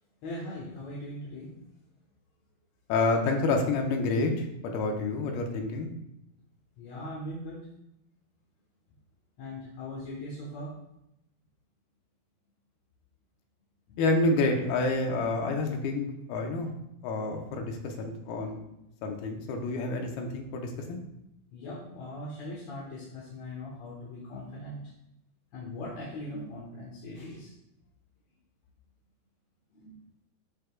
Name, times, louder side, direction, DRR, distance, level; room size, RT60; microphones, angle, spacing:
voice 1, 0.2-1.5 6.8-7.6 9.4-10.7 13.9-14.0 21.5-24.8 25.5-27.5 29.7-30.0, left 1 dB, 60° left, -5 dB, 2.0 m, -40 dB
voice 2, 2.9-5.9 14.0-16.7 17.0-18.6 19.0-21.0, left 3 dB, 85° left, 3 dB, 2.9 m, -28 dB
12.5 x 5.0 x 2.3 m, 0.83 s
omnidirectional pair, 4.4 m